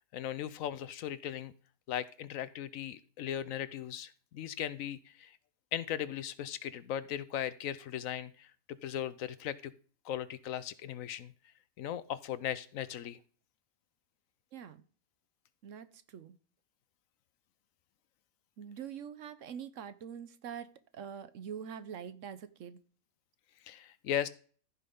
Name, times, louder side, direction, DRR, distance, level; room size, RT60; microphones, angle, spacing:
voice 1, 0.1-1.5 1.9-5.3 5.7-8.5 8.8-9.7 10.0-11.3 11.8-13.2 23.7-24.3, left 10 dB, 70° left, 15 dB, 1.0 m, -38 dB
voice 2, 14.5-14.8 15.6-16.3 18.6-22.8, right 8 dB, 65° right, 13 dB, 1.0 m, -44 dB
15.0 x 5.9 x 3.7 m, 0.43 s
omnidirectional pair, 1.5 m